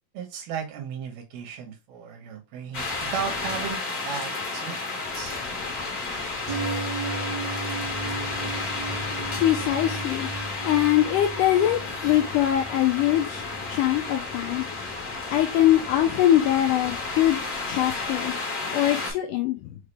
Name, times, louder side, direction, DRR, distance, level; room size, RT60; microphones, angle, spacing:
voice 1, 0.1-5.4, right 7 dB, 85° right, 3.0 m, -35 dB
sound 1, 2.7-19.1, left 3 dB, 50° left, 1.1 m, -32 dB
sound 2, 6.5-16.3 16.6-16.7, right 2 dB, 55° right, 1.3 m, -36 dB
voice 2, 9.4-10.3 10.6-14.7 15.3-17.4 17.7-18.3 18.7-19.8, left 12 dB, 85° left, 1.9 m, -22 dB
6.4 x 2.4 x 3.2 m
omnidirectional pair, 4.2 m